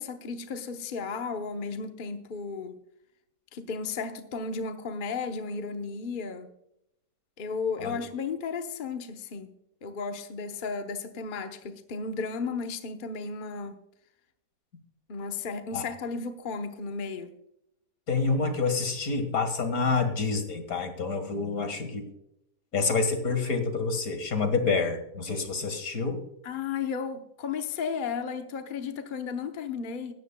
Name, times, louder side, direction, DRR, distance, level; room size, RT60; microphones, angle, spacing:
voice 1, 0.0-2.8 3.5-6.5 7.4-13.8 15.1-17.3 26.4-30.1, left 5 dB, 40° left, 0.9 m, -34 dB
voice 2, 18.1-22.1 22.7-26.2, left 4 dB, 70° left, 2.1 m, -28 dB
17.0 x 13.0 x 2.3 m
omnidirectional pair, 1.6 m